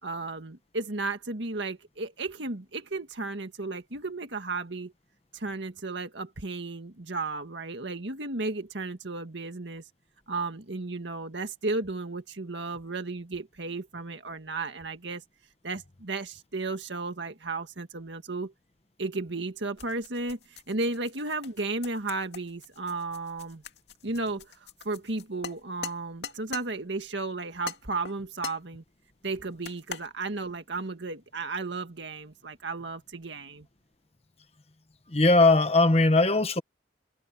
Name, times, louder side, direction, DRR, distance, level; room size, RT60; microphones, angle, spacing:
voice 1, 0.0-4.9 5.3-9.8 10.3-15.2 15.6-18.5 19.0-23.6 24.0-24.5 24.8-28.8 29.2-33.7, right 3 dB, 80° right, 1.8 m, -34 dB
sound 1, 19.8-26.7 27.7-28.7 29.6-30.1, left 6 dB, 65° left, 2.5 m, -42 dB
voice 2, 35.1-36.6, left 2 dB, 35° left, 1.2 m, -20 dB
head